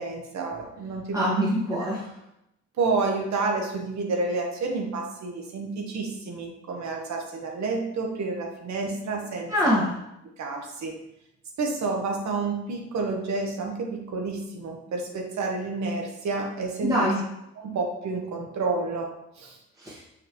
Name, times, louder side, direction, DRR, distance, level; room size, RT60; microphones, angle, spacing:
voice 1, 0.0-1.3 2.8-9.8 10.4-10.9 11.6-17.1 17.6-19.1 19.4-19.6, right 3 dB, 65° right, 1 dB, 1.3 m, -29 dB
voice 2, 1.1-2.0 9.5-9.9 16.8-17.2 19.8-20.0, equal, 10° right, -6 dB, 1.6 m, -24 dB
5.7 x 5.3 x 3.1 m, 0.84 s
cardioid pair, 90°, 30 cm